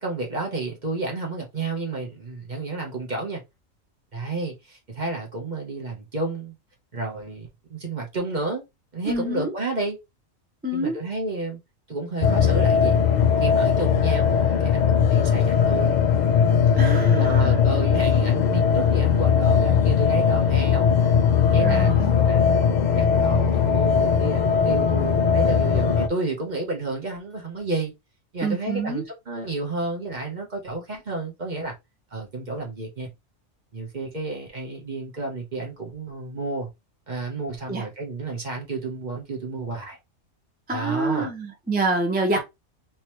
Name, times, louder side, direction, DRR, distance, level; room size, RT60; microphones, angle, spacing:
voice 1, 0.0-3.4 4.1-6.5 6.9-8.6 8.9-10.0 10.7-11.6 11.9-13.0 13.4-16.0 16.7-20.9 21.4-27.9 28.3-31.7 32.1-33.1 33.7-36.7 37.1-40.0 40.7-41.3 42.3-42.4, right 2 dB, 40° right, 1.1 m, -31 dB
voice 2, 9.1-9.5 10.6-11.0 16.8-17.6 21.6-22.1 28.4-29.0 37.7-37.8 40.7-42.4, right 2 dB, 10° right, 0.7 m, -26 dB
sound 1, 12.2-26.1, left 7 dB, 55° left, 0.5 m, -19 dB
3.8 x 2.8 x 3.0 m
omnidirectional pair, 1.3 m